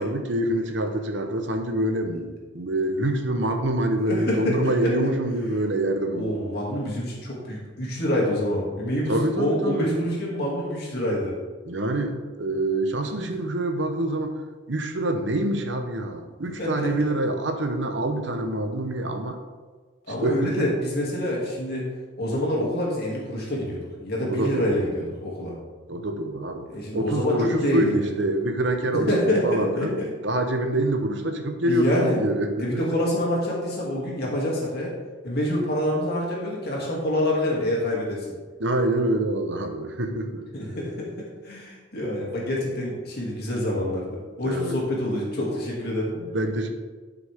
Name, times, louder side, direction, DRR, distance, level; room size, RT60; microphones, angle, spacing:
voice 1, 0.0-6.4 9.1-9.9 11.7-14.3 14.7-19.4 20.2-20.7 24.3-24.8 25.9-26.7 26.9-30.0 30.2-32.8 38.6-40.4 44.4-44.8 46.2-46.7, right 1 dB, 65° right, 5 dB, 0.9 m, -26 dB
voice 2, 4.0-4.9 6.1-11.4 16.6-16.9 20.1-21.9 22.2-25.6 26.7-28.0 28.9-30.1 31.6-32.2 32.6-35.0 35.2-38.3 40.5-46.1, left 1 dB, 55° left, -3 dB, 2.5 m, -26 dB
11.5 x 5.9 x 3.6 m, 1.4 s
head